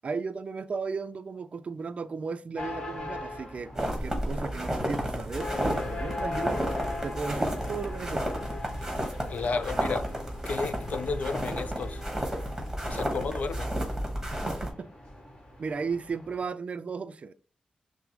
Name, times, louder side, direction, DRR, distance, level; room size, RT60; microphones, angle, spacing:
voice 1, 0.0-6.7 7.0-8.4 14.3-14.9 15.6-17.3, right 5 dB, 50° right, 0.4 m, -35 dB
sound 1, 2.6-16.5, left 2 dB, 30° left, 1.3 m, -40 dB
sound 2, 3.7-14.7, equal, 10° right, 1.5 m, -32 dB
voice 2, 9.3-10.1 10.5-12.0 12.9-13.7, left 4 dB, 65° left, 0.4 m, -32 dB
5.9 x 2.0 x 3.1 m
cardioid pair, 65°, 3 cm